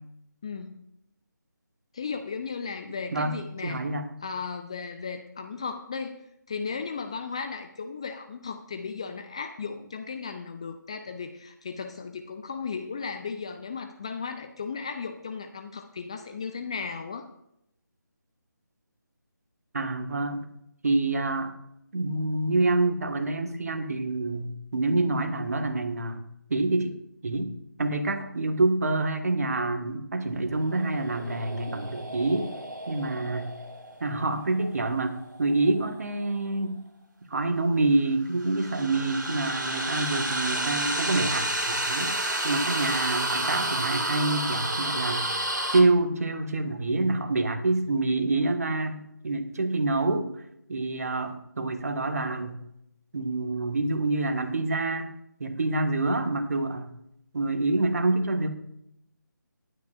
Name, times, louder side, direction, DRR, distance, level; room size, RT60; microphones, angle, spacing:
voice 1, 0.4-0.8 1.9-3.8 4.2-6.2 6.5-17.3, left 5 dB, 15° left, 6 dB, 0.4 m, -35 dB
voice 2, 3.6-4.1 19.7-20.5 20.8-21.5 21.9-26.2 26.5-26.9 27.2-27.5 27.8-32.5 32.9-33.5 34.0-36.8 37.3-42.1 42.4-45.3 45.7-50.3 50.7-52.6 53.1-55.1 55.4-56.9 57.3-58.5, right 2 dB, 50° right, 6 dB, 1.5 m, -27 dB
sound 1, 30.6-35.8 38.3-45.8, right 1 dB, 70° right, 2.3 m, -31 dB
19.5 x 9.0 x 2.4 m, 0.78 s
figure-of-eight pair, 155°, 11 cm